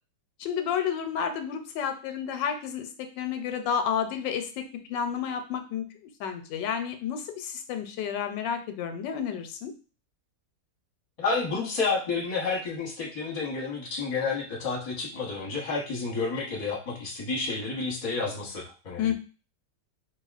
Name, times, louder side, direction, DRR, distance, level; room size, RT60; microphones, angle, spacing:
voice 1, 0.4-2.9 3.2-4.5 4.9-5.8 6.2-9.7 19.0-19.1, left 8 dB, 85° left, 6 dB, 1.3 m, -30 dB
voice 2, 11.2-19.1, left 4 dB, 30° left, -2 dB, 0.8 m, -30 dB
4.5 x 2.8 x 2.4 m, 0.36 s
omnidirectional pair, 1.9 m